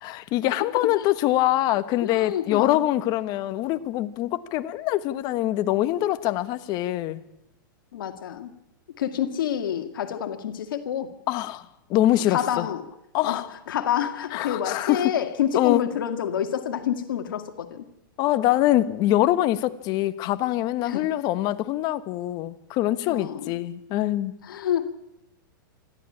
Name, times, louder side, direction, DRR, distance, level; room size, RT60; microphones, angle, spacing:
voice 1, 0.0-7.2 11.3-11.6 11.9-12.7 13.1-13.5 14.3-15.0 15.5-15.8 18.2-24.4, left 14 dB, 35° left, 1.2 m, -24 dB
voice 2, 2.0-2.8 7.9-8.5 9.0-11.1 12.3-12.9 13.2-17.9 20.8-21.1 23.1-23.5 24.4-24.9, left 9 dB, 70° left, 2.0 m, -28 dB
27.0 x 12.5 x 8.7 m
hypercardioid pair, 135°, 12 cm